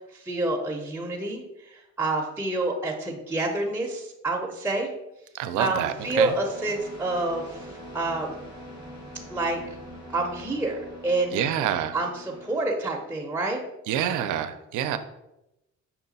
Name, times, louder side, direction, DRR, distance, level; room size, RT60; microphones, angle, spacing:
voice 1, 0.1-4.9 5.6-8.4 9.3-9.6 10.1-11.5 11.9-13.6, right 2 dB, 5° right, 1 dB, 0.6 m, -28 dB
voice 2, 5.3-6.3 11.3-12.0 13.9-15.0, right 10 dB, 80° right, 10 dB, 0.5 m, -27 dB
sound 1, 5.9-12.6, equal, 80° left, 1.3 m, -43 dB
5.7 x 2.2 x 3.9 m, 0.90 s
cardioid pair, 90°, 30 cm